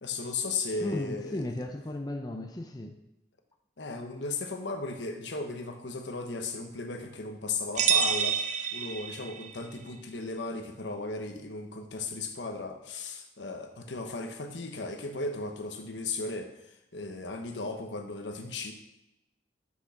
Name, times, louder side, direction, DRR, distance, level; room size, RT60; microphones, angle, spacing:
voice 1, 0.0-1.4 3.8-18.7, left 3 dB, 85° left, 5 dB, 1.0 m, -36 dB
voice 2, 0.8-3.0, left 1 dB, 20° left, 4 dB, 0.5 m, -35 dB
sound 1, 7.8-9.6, right 7 dB, 40° right, 0.5 m, -28 dB
6.3 x 6.1 x 5.8 m, 0.87 s
head